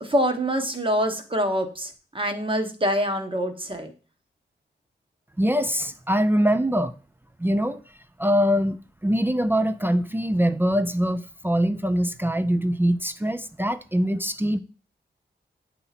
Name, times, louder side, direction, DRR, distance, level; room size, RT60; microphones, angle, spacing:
voice 1, 0.0-3.9, equal, 30° right, 1.0 m, -25 dB
voice 2, 5.4-6.9 7.4-7.9 8.2-14.6, equal, 10° right, 0.4 m, -23 dB
8.1 x 2.9 x 4.0 m
wide cardioid pair, 75°, 19 cm